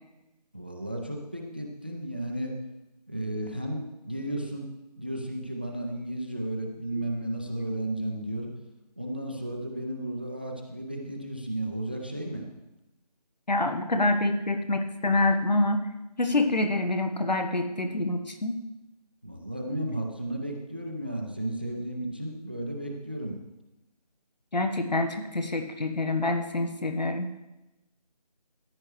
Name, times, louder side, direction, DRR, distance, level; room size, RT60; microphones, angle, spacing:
voice 1, 0.5-2.5 3.1-4.7 5.0-8.5 9.0-12.4 19.2-23.4, right 1 dB, 15° right, 2 dB, 0.5 m, -33 dB
voice 2, 13.5-15.8 16.2-18.6 24.5-27.3, left 2 dB, 80° left, 6 dB, 1.3 m, -26 dB
14.5 x 9.8 x 3.2 m, 0.96 s
figure-of-eight pair, 165°, 21 cm